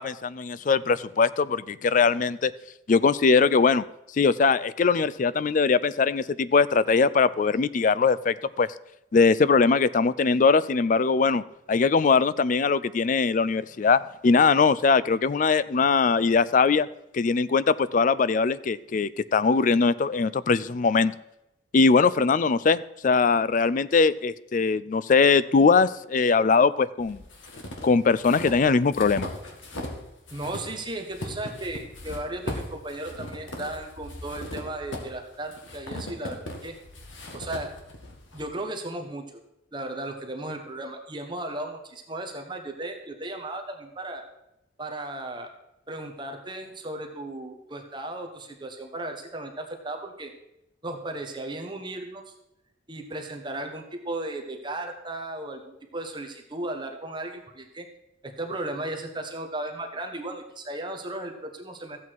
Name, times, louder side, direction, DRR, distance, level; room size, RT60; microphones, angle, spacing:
voice 1, 0.0-2.5 2.9-3.8 4.1-8.7 9.1-11.4 11.7-16.9 17.1-21.1 21.7-27.2 27.8-29.3, left 4 dB, 40° left, 17 dB, 0.3 m, -21 dB
sound 1, 27.0-30.0 30.3-38.4, left 1 dB, 75° left, 2.0 m, -38 dB
voice 2, 30.3-36.7 37.3-37.7 38.3-39.4 39.7-44.2 44.8-45.5 45.9-50.3 50.8-52.3 52.9-57.9 58.2-62.0, right 1 dB, 25° right, 3 dB, 1.1 m, -35 dB
14.0 x 8.3 x 4.6 m, 0.89 s
head